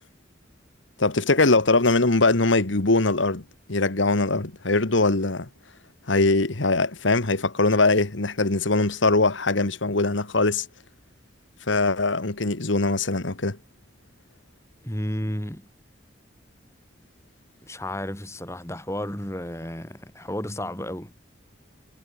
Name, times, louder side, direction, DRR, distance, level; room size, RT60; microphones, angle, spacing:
voice 1, 1.0-3.4 3.7-5.5 6.1-10.7 11.7-13.6, left 3 dB, 80° left, 1.8 m, -21 dB
voice 2, 14.8-15.7 17.6-21.1, left 1 dB, 15° left, 4.2 m, -32 dB
head